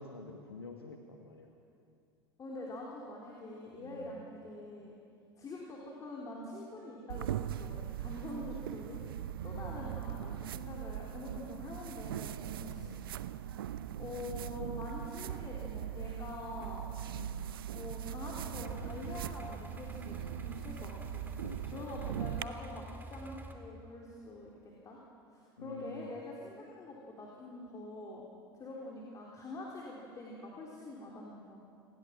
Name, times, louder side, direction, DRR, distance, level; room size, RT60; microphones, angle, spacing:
voice 1, 0.0-1.6 3.8-4.2 8.6-8.7 9.5-9.9 12.6-13.1 17.1-17.5 21.4-21.9 25.6-26.1, left 3 dB, 80° left, 3 dB, 1.6 m, -48 dB
voice 2, 2.4-4.9 5.4-9.0 9.4-12.3 12.6-13.0 14.0-16.9 17.7-20.1 20.4-21.2 21.7-25.0 25.3-28.2 28.5-31.6, left 2 dB, 25° left, -3 dB, 3.9 m, -45 dB
sound 1, 7.1-22.4, right 11 dB, 65° right, 0.7 m, -40 dB
sound 2, 18.5-23.5, right 1 dB, 15° right, 2.6 m, -47 dB
29.0 x 19.5 x 6.0 m, 2.5 s
figure-of-eight pair, 75°, 13 cm